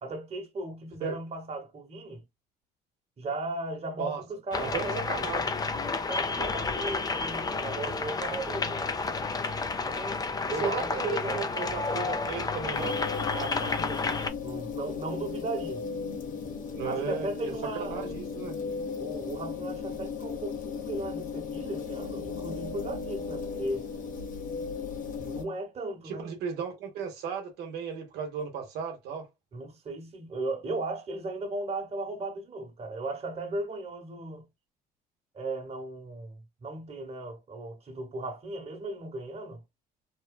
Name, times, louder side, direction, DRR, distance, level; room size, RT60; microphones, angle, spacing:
voice 1, 0.0-2.2 3.2-5.1 6.1-8.9 9.8-10.2 10.5-11.5 13.3-15.8 16.8-18.1 19.0-23.8 25.2-26.3 29.5-34.4 35.3-39.6, right 2 dB, 40° right, 1.1 m, -36 dB
sound 1, 4.5-14.3, left 4 dB, 25° left, 0.5 m, -31 dB
voice 2, 4.6-5.5 10.6-13.0 16.7-17.5 17.9-18.6 26.0-29.3, right 6 dB, 75° right, 0.8 m, -35 dB
sound 2, 12.7-25.4, left 5 dB, 55° left, 1.0 m, -36 dB
3.0 x 2.1 x 2.3 m
cardioid pair, 90°, 17 cm